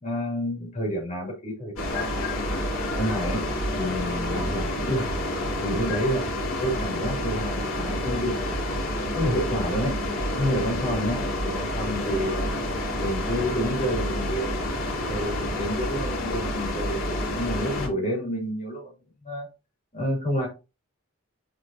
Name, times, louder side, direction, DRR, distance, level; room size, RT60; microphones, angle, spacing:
voice 1, 0.0-2.6 2.9-3.5 3.7-5.1 5.6-6.3 6.6-8.7 9.1-10.0 10.3-12.5 13.0-14.5 15.1-17.0 17.3-18.9 19.2-19.5 19.9-20.5, equal, 35° left, -2 dB, 2.7 m, -29 dB
sound 1, 1.8-17.9, left 1 dB, 80° left, 3.2 m, -28 dB
8.9 x 4.4 x 2.7 m, 0.27 s
head